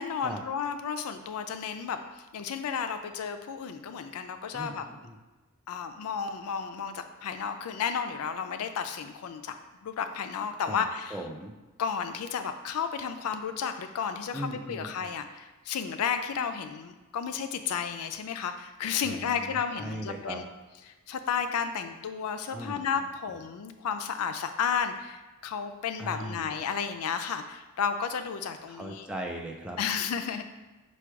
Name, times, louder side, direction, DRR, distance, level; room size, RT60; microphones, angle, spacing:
voice 1, 0.0-4.8 5.7-9.5 9.8-11.2 11.8-20.4 20.9-29.1 29.8-30.4, left 7 dB, 80° left, 8 dB, 0.4 m, -32 dB
voice 2, 4.5-5.2 10.7-10.8 11.1-11.5 14.3-15.1 19.0-20.4 22.5-22.8 26.0-26.5 28.7-29.8, right 1 dB, 5° right, 1 dB, 0.4 m, -38 dB
4.7 x 2.3 x 4.5 m, 1.2 s
head